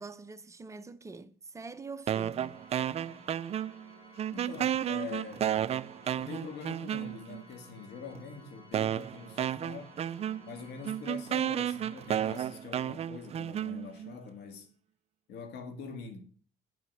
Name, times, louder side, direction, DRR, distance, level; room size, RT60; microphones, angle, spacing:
voice 1, 0.0-2.6, right 4 dB, 20° right, 0.7 m, -45 dB
sound 1, 2.1-3.9 4.2-7.4 8.1-8.2 8.7-14.1, right 10 dB, 40° right, 0.4 m, -32 dB
Organ, 2.3-13.1, left 2 dB, 30° left, 2.9 m, -56 dB
voice 2, 4.3-5.5 6.2-10.0 10.4-14.7 15.3-16.2, left 5 dB, 80° left, 1.8 m, -44 dB
9.5 x 5.8 x 6.1 m
cardioid pair, 110°, 17 cm